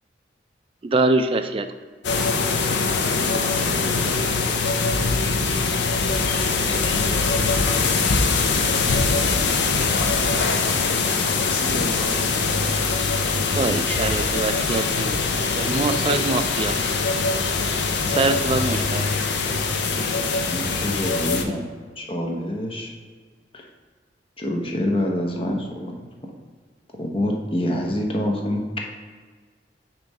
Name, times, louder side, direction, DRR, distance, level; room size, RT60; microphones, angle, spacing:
voice 1, 0.8-1.7 13.5-15.2 15.5-16.7 18.1-19.0, right 3 dB, 30° right, 7 dB, 0.4 m, -23 dB
sound 1, 2.0-21.4, left 4 dB, 75° left, 0.6 m, -22 dB
voice 2, 3.7-4.2 11.3-12.8, left 1 dB, 60° left, -1 dB, 1.3 m, -38 dB
voice 3, 20.2-21.6 22.0-22.9 24.4-25.9 27.0-28.6, left 1 dB, 30° left, 1 dB, 0.9 m, -26 dB
7.0 x 3.1 x 5.4 m, 1.5 s
head